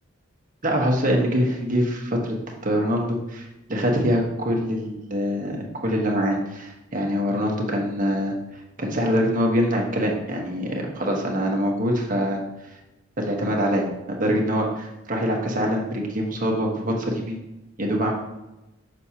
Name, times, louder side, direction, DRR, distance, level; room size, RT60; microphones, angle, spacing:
voice 1, 0.6-2.4 2.6-8.4 8.8-12.4 13.2-17.4 17.8-18.1, equal, 45° right, 0 dB, 1.2 m, -24 dB
6.3 x 6.2 x 2.8 m, 0.97 s
head